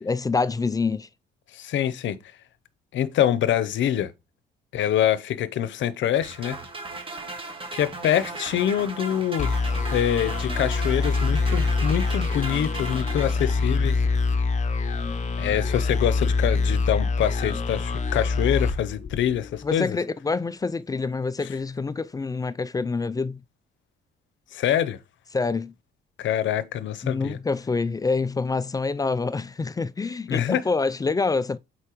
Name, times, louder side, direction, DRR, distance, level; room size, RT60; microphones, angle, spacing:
voice 1, 0.0-1.1 19.6-23.4 25.3-25.7 27.0-31.6, left 4 dB, 20° left, 0.3 m, -26 dB
voice 2, 1.5-2.2 2.9-4.1 4.7-6.6 7.7-9.5 9.9-14.0 15.4-20.0 21.4-21.5 24.5-25.0 26.2-27.4 30.3-30.6, left 10 dB, 70° left, 0.7 m, -25 dB
sound 1, 6.2-14.0, right 3 dB, 25° right, 1.6 m, -37 dB
sound 2, 9.4-19.7, left 4 dB, 35° left, 0.7 m, -25 dB
8.2 x 4.5 x 3.0 m
cardioid pair, 90°, 20 cm